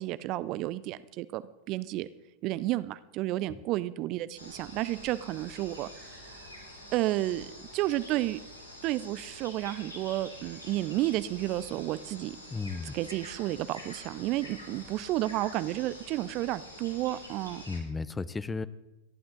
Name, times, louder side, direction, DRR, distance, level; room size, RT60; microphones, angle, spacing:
voice 1, 0.0-2.1 2.4-6.5 6.9-7.5 7.7-8.4 8.8-12.4 12.9-17.6, right 16 dB, 40° right, 16 dB, 0.6 m, -31 dB
sound 1, 4.4-17.8, left 1 dB, 85° left, 3.2 m, -47 dB
voice 2, 12.5-12.9 17.7-18.7, left 4 dB, 10° left, 17 dB, 0.6 m, -34 dB
30.0 x 11.0 x 3.8 m, 0.95 s
figure-of-eight pair, 90°, 0 cm